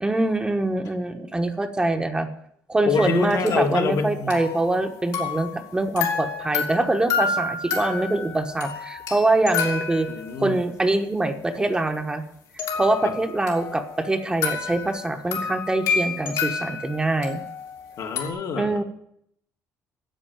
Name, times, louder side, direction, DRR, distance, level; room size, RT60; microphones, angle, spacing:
voice 1, 0.0-2.3 2.7-10.1 10.4-12.2 12.7-17.4 18.5-18.8, right 2 dB, 15° right, 6 dB, 1.1 m, -24 dB
sound 1, 2.9-5.7 6.0-10.6 12.6-18.3, left 5 dB, 80° left, 3.0 m, -30 dB
voice 2, 2.9-4.3 10.1-10.6 13.0-13.1 18.0-18.8, left 5 dB, 60° left, 4 dB, 1.7 m, -26 dB
10.0 x 8.0 x 9.2 m, 0.74 s
cardioid pair, 125°, 7 cm